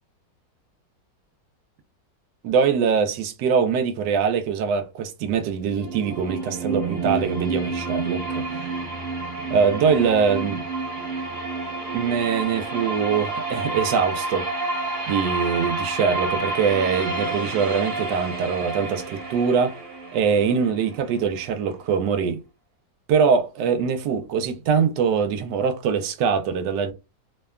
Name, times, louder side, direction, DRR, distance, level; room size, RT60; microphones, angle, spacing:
voice 1, 2.4-8.5 9.5-10.7 11.9-14.5 15.1-19.8 20.1-22.4 23.1-26.9, right 6 dB, 90° right, 1.2 m, -23 dB
sound 1, 5.5-21.5, right 3 dB, 60° right, 1.1 m, -29 dB
3.1 x 2.2 x 2.3 m
omnidirectional pair, 1.8 m